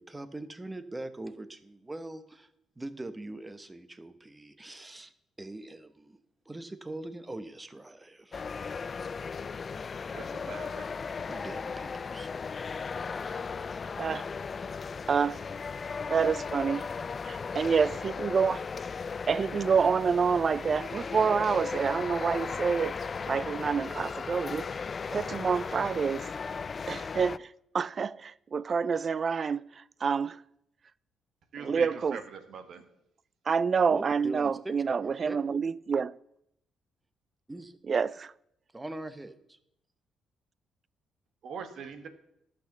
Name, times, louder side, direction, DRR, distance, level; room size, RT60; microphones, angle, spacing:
voice 1, 0.0-2.5 2.8-5.1 5.4-6.2 6.5-8.4 11.3-12.3 33.9-34.7 35.0-35.4 37.5-37.8 38.7-39.6, right 2 dB, 15° right, 0.9 m, -42 dB
sound 1, 8.3-27.4, left 5 dB, 40° left, 0.3 m, -36 dB
voice 2, 10.1-10.9 31.5-32.2 32.5-32.8 41.4-42.1, right 6 dB, 65° right, 1.3 m, -41 dB
voice 3, 15.1-15.4 16.1-16.9 17.2-18.6 19.3-23.0 23.3-24.8 25.1-26.3 26.9-30.4 31.6-32.2 33.5-36.2 37.9-38.3, right 6 dB, 45° right, 0.3 m, -28 dB
11.5 x 6.0 x 7.2 m
cardioid pair, 90°, 0 cm